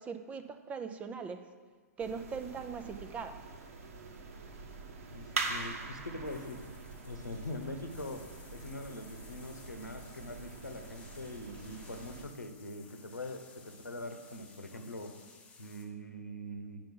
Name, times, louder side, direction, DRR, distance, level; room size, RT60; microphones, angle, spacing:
voice 1, 0.0-1.4 2.0-3.4, right 5 dB, 15° right, 9 dB, 0.5 m, -40 dB
sound 1, 2.0-12.3, right 4 dB, 60° right, 1.1 m, -43 dB
voice 2, 5.1-6.6 7.0-8.2 8.5-15.1 15.6-16.8, left 1 dB, 90° left, 6 dB, 1.0 m, -43 dB
sound 2, 6.2-15.9, left 4 dB, 10° left, 0.9 m, -57 dB
8.9 x 5.5 x 5.4 m, 1.5 s
figure-of-eight pair, 115°, 9 cm